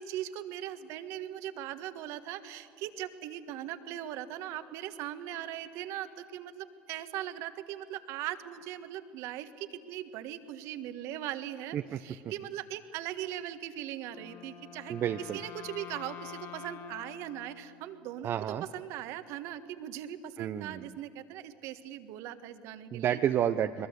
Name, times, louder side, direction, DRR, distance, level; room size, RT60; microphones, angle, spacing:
voice 1, 0.0-15.0 15.3-18.3 18.7-23.2, right 12 dB, 60° right, 10 dB, 1.5 m, -40 dB
Wind instrument woodwind instrument, 14.0-18.3, left 8 dB, 45° left, 1.8 m, -47 dB
voice 2, 14.9-15.4 18.2-18.6 20.4-20.9 22.9-23.9, right 10 dB, 45° right, 8 dB, 0.8 m, -30 dB
22.0 x 21.5 x 8.2 m, 2.4 s
hypercardioid pair, 80°, 5 cm